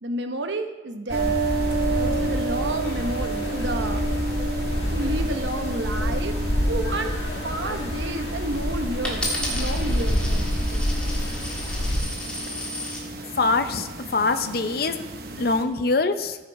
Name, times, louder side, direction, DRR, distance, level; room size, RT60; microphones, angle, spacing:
voice 1, 0.0-1.4 1.9-4.1 4.9-6.4 6.7-7.2 7.4-10.9, right 1 dB, 80° right, 6 dB, 1.0 m, -31 dB
sound 1, 1.1-12.0, equal, 70° left, 1.8 m, -27 dB
sound 2, 1.1-15.6, right 3 dB, 55° right, 0.9 m, -32 dB
Coin (dropping), 9.0-13.1 13.8-14.2, left 1 dB, 5° left, 1.9 m, -33 dB
voice 2, 13.4-15.0 15.4-16.4, left 3 dB, 55° left, 9 dB, 0.6 m, -23 dB
14.5 x 6.7 x 4.7 m, 1.2 s
head